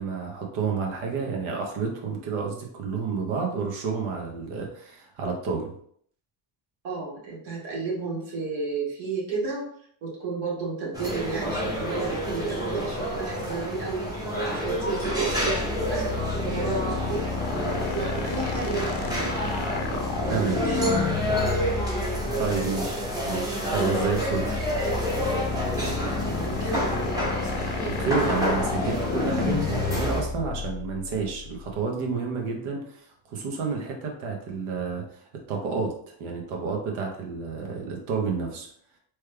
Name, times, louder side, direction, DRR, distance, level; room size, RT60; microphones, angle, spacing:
voice 1, 0.0-5.7 20.3-20.6 22.4-24.5 27.9-35.2 35.5-35.9 36.2-38.7, right 5 dB, 90° right, 1 dB, 1.0 m, -30 dB
voice 2, 6.8-9.7 10.0-14.2 14.5-15.6 15.9-17.2 17.5-19.4 20.2-21.6 26.2-26.9, right 4 dB, 70° right, -4 dB, 1.4 m, -32 dB
sound 1, 10.9-30.2, equal, 10° right, 0.8 m, -29 dB
sound 2, 14.7-31.8, left 5 dB, 45° left, 0.5 m, -31 dB
3.1 x 2.3 x 3.3 m, 0.64 s
cardioid pair, 130°, 49 cm